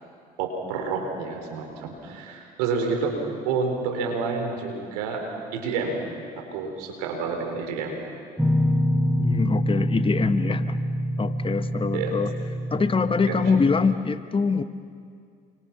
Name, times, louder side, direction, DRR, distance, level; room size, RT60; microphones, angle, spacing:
voice 1, 0.4-6.0 6.4-8.0 11.9-12.1 12.7-12.8 13.3-13.4, right 4 dB, 85° right, 3 dB, 4.2 m, -29 dB
sound 1, 8.4-14.0, equal, 5° right, 1.3 m, -26 dB
voice 2, 9.2-10.8 11.2-12.3 12.7-14.6, left 5 dB, 25° left, 10 dB, 1.3 m, -24 dB
28.5 x 24.5 x 6.0 m, 2.2 s
hypercardioid pair, 65°, 19 cm